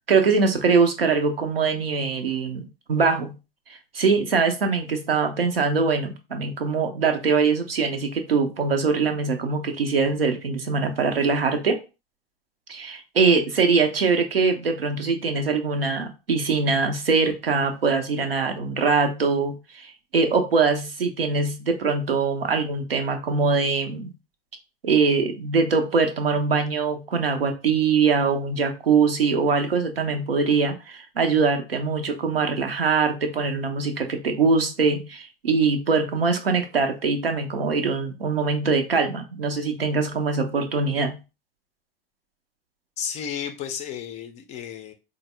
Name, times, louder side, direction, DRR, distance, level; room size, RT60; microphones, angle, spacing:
voice 1, 0.1-3.4 3.9-11.8 12.7-24.1 24.8-41.2, right 4 dB, 75° right, 0.7 m, -23 dB
voice 2, 43.0-44.9, left 8 dB, 25° left, 0.4 m, -33 dB
4.1 x 2.0 x 3.2 m
figure-of-eight pair, 85°, 29 cm